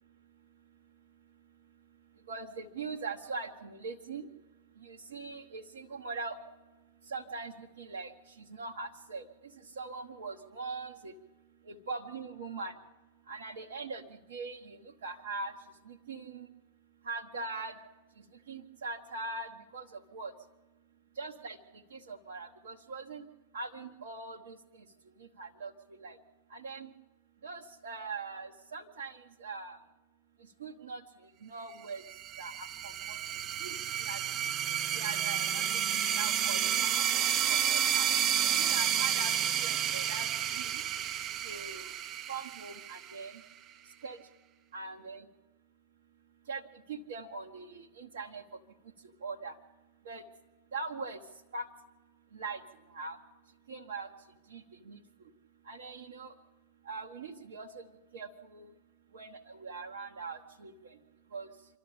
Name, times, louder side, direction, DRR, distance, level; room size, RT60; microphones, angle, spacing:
voice 1, 2.3-4.3 4.8-6.4 7.1-8.1 8.4-9.3 9.8-11.1 11.7-12.7 13.3-14.0 14.3-15.5 15.9-16.5 17.0-17.7 18.5-20.3 21.2-21.6 21.9-23.3 23.5-24.6 25.2-25.7 26.0-26.2 26.5-26.9 27.4-29.8 30.6-31.0 31.4-32.0 32.4-33.2 33.6-34.4 34.9-35.8 36.1-38.1 38.5-40.3 40.5-40.7 41.4-41.8 42.3-43.3 44.0-44.2 44.7-45.2 46.5-46.6 46.9-48.4 49.2-49.5 50.0-50.2 50.7-51.2 51.5-51.7 52.3-52.6 52.9-53.2 53.7-54.1 54.5-55.0 55.7-56.3 56.9-57.8 58.1-58.7 59.1-60.9 61.3-61.5, right 4 dB, 65° right, 1 dB, 1.1 m, -41 dB
sound 1, 32.1-43.4, right 9 dB, 30° right, 0.8 m, -31 dB
26.0 x 12.0 x 8.5 m, 1.1 s
figure-of-eight pair, 90°, 0 cm